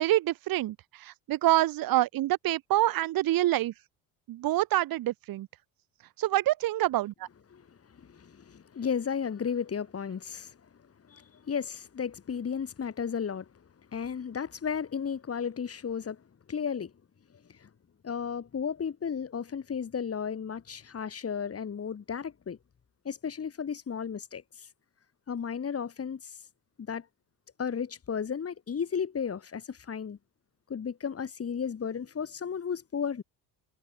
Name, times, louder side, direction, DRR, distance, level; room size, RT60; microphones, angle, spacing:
voice 1, 0.0-3.7 4.3-5.5 6.2-7.3, right 15 dB, 65° right, 3.1 m, -26 dB
voice 2, 8.1-10.5 11.1-13.4 13.9-16.2 16.5-16.9 18.0-22.6 23.0-24.4 25.3-26.2 26.9-27.0 27.6-30.2 30.7-33.2, left 7 dB, 40° left, 4.7 m, -34 dB
supercardioid pair, 70°, 38 cm